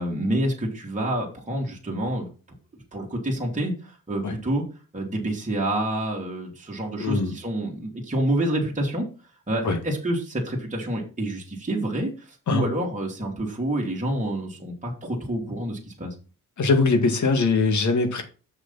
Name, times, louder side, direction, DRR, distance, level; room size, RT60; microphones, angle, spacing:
voice 1, 0.0-2.3 2.9-4.6 4.9-9.1 9.5-16.1, right 1 dB, 25° right, 3.0 m, -28 dB
voice 2, 7.0-7.3 9.6-9.8 12.5-12.7 16.6-18.2, left 3 dB, 60° left, 2.1 m, -21 dB
7.2 x 6.9 x 4.2 m
cardioid pair, 105°, 33 cm